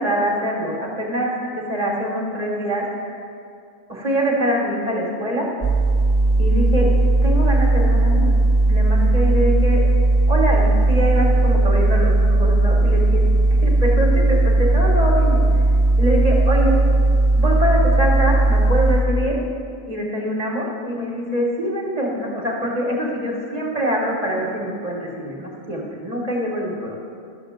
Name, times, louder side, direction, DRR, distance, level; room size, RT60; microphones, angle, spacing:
voice 1, 0.0-2.8 3.9-5.5 6.4-6.9 7.2-8.3 8.7-9.8 10.3-13.2 13.6-15.4 16.0-16.7 17.3-19.4 19.9-27.0, equal, 30° right, -2 dB, 1.5 m, -24 dB
sound 1, 5.6-19.0, right 2 dB, 20° left, 0.8 m, -17 dB
12.5 x 6.5 x 5.1 m, 2.4 s
omnidirectional pair, 1.4 m